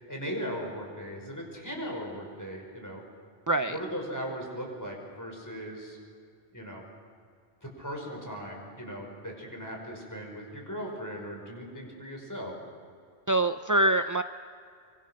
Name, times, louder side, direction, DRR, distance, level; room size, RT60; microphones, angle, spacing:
voice 1, 0.1-3.0 3.6-6.0 6.5-6.9 7.6-12.5, equal, 15° left, 0 dB, 5.6 m, -38 dB
voice 2, 3.5-3.8 13.3-14.2, right 1 dB, 30° right, 8 dB, 0.3 m, -24 dB
25.5 x 24.5 x 6.5 m, 2.3 s
omnidirectional pair, 1.1 m